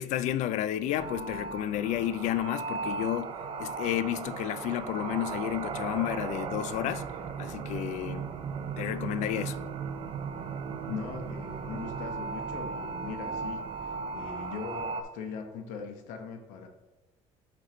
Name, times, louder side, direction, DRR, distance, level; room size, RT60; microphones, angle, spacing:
voice 1, 0.0-7.1 7.4-8.3 8.8-9.6, left 12 dB, 70° left, 0.5 m, -31 dB
sound 1, 1.0-15.0, right 5 dB, 45° right, 0.7 m, -36 dB
voice 2, 10.9-16.7, left 5 dB, 85° left, 1.0 m, -40 dB
7.9 x 4.6 x 3.9 m
cardioid pair, 125°, 13 cm